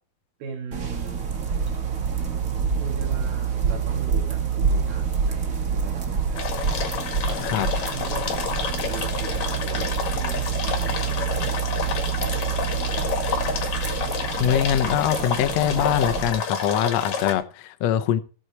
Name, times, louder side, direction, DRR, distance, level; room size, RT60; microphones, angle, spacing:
voice 1, 0.4-1.3 1.7-1.8 2.7-6.5 7.2-11.7 12.3-13.4, right 6 dB, 80° right, 3.7 m, -40 dB
sound 1, 0.7-16.3, right 6 dB, 50° right, 1.0 m, -27 dB
sound 2, 6.4-17.3, left 6 dB, 55° left, 2.9 m, -29 dB
voice 2, 14.4-18.2, left 10 dB, 85° left, 1.5 m, -23 dB
17.0 x 8.0 x 4.6 m
omnidirectional pair, 4.3 m